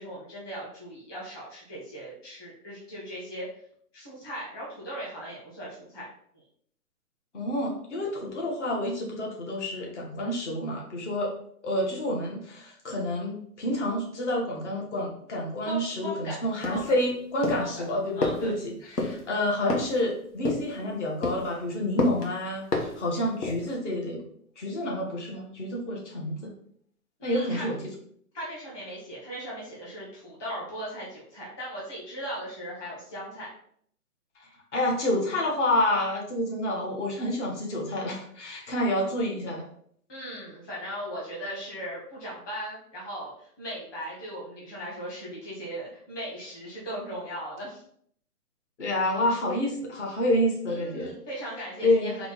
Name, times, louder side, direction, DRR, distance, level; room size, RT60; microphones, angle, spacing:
voice 1, 0.0-3.4 3.9-6.1 15.6-16.4 16.7-16.9 17.6-17.8 18.1-18.5 27.2-27.7 28.3-33.5 40.1-47.8 50.7-52.3, equal, 15° left, -6 dB, 1.1 m, -38 dB
voice 2, 7.3-11.3 11.6-24.2 24.6-26.5 27.2-27.8 34.7-39.7 48.8-51.1 51.8-52.2, left 1 dB, 50° left, -1 dB, 1.4 m, -28 dB
sound 1, 16.6-17.0 17.4-17.7 18.2-18.4 19.0-19.2 19.7-20.0 20.4-20.7 21.2-21.5 22.0-22.3 22.7-23.0 23.4-23.7, left 2 dB, 90° left, 1.4 m, -29 dB
3.7 x 3.1 x 3.9 m, 0.64 s
hypercardioid pair, 160°, 46 cm